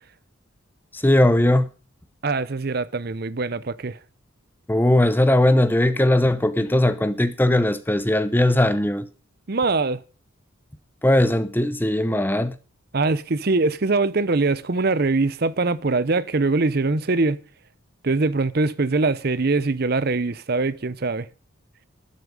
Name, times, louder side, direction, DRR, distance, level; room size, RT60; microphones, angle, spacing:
voice 1, 0.9-1.7 4.7-9.1 11.0-12.6, left 1 dB, 10° left, 0.8 m, -19 dB
voice 2, 2.2-4.0 9.5-10.0 12.9-17.4 18.0-21.3, right 3 dB, 50° right, 0.7 m, -22 dB
12.0 x 10.0 x 5.3 m
head